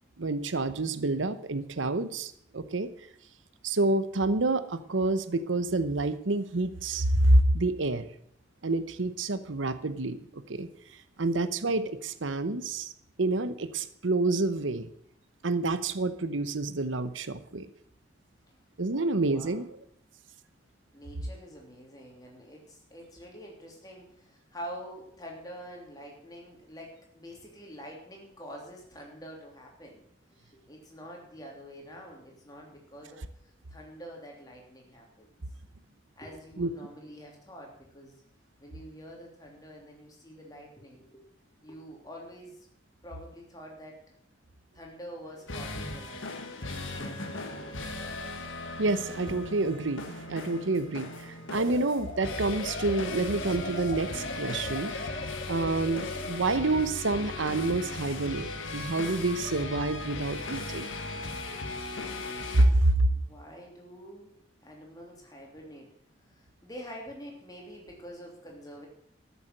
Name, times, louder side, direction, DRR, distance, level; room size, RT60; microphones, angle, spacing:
voice 1, 0.2-2.9 3.6-8.1 8.6-10.7 11.2-12.9 13.2-14.9 15.4-17.7 18.8-19.7 36.6-36.7 48.8-54.9 55.5-60.9 62.5-63.1, right 2 dB, 90° right, 12 dB, 0.9 m, -28 dB
voice 2, 18.9-19.6 20.9-30.0 30.3-35.4 36.1-38.2 38.6-41.2 41.6-42.7 43.0-44.0 44.7-47.7 63.1-64.4 64.6-65.9 66.3-68.9, equal, 20° left, -1 dB, 3.2 m, -46 dB
sound 1, 45.3-62.6, left 2 dB, 90° left, 1.6 m, -38 dB
sound 2, 51.5-56.4, left 2 dB, 50° left, 1.1 m, -40 dB
13.5 x 7.1 x 7.7 m, 0.69 s
head